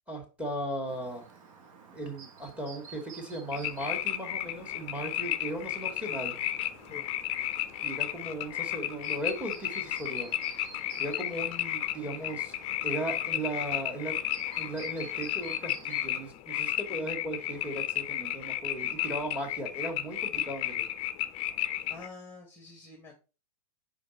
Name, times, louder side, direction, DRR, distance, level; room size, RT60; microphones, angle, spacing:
voice 1, 0.1-1.3 1.9-6.3 7.8-10.3 11.0-12.5 12.8-14.2 14.5-20.9, right 1 dB, 5° right, 3 dB, 1.9 m, -37 dB
Chirp tweet, 0.9-16.3, right 5 dB, 60° right, 1.4 m, -52 dB
sound 1, 3.5-22.1, left 13 dB, 35° left, 0.5 m, -33 dB
voice 2, 21.9-23.2, left 4 dB, 10° left, 2 dB, 1.1 m, -47 dB
5.1 x 5.0 x 4.0 m, 0.33 s
hypercardioid pair, 115°, 19 cm